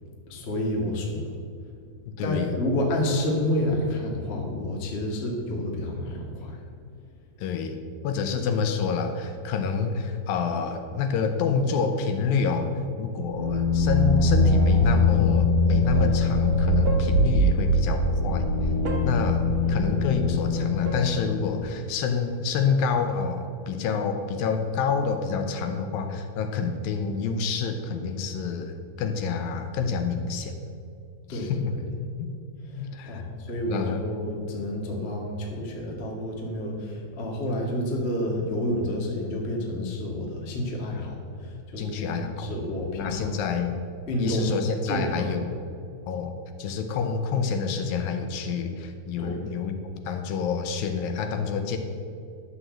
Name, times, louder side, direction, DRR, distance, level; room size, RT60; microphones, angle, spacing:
voice 1, 0.3-1.3 2.2-6.6 19.6-19.8 31.3-31.8 32.7-43.4 44.1-44.5 44.8-45.3 49.2-49.4, left 1 dB, 50° left, -1 dB, 0.7 m, -29 dB
voice 2, 2.2-2.5 7.4-7.8 8.0-12.7 13.0-18.5 19.0-30.6 31.3-31.7 32.2-32.4 32.8-33.2 33.7-34.0 41.8-42.5 42.9-43.7 44.2-45.5 46.1-51.8, left 5 dB, 75° left, 7 dB, 2.4 m, -28 dB
sound 1, 13.2-21.8, left 2 dB, 55° right, 1.4 m, -22 dB
11.0 x 6.5 x 7.6 m, 2.4 s
omnidirectional pair, 4.4 m